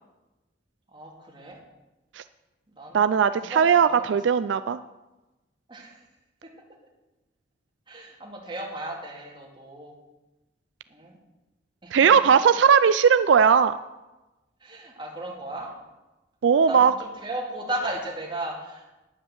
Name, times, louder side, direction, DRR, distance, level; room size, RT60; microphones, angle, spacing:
voice 1, 0.9-1.6 2.8-3.0 3.4-4.1 5.7-6.0 7.9-10.0 10.9-11.2 11.8-12.0 14.6-15.7 16.7-18.8, right 1 dB, 25° right, -1 dB, 2.5 m, -35 dB
voice 2, 2.9-4.8 11.9-13.8 16.4-16.9, right 7 dB, 80° right, 13 dB, 0.4 m, -18 dB
9.6 x 9.5 x 7.1 m, 1.1 s
head